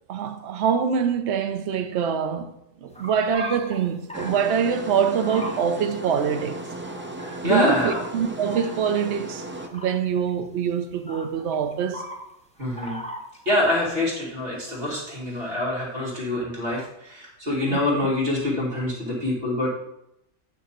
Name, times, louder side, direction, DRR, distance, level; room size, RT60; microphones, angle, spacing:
voice 1, 0.1-2.5 2.8-6.7 7.4-9.4 9.7-12.1 17.7-17.8, right 7 dB, 60° right, 1.0 m, -24 dB
sound 1, 2.9-4.6 5.2-5.8 6.9-7.4 7.8-8.7 9.4-10.3 11.1-12.3 12.6-13.9, equal, 5° left, 0.8 m, -38 dB
sound 2, 4.1-9.7, right 1 dB, 15° right, 0.5 m, -36 dB
voice 2, 7.4-8.0 12.6-13.0 13.4-19.7, left 1 dB, 45° right, 2.9 m, -25 dB
9.2 x 6.1 x 4.4 m
omnidirectional pair, 1.4 m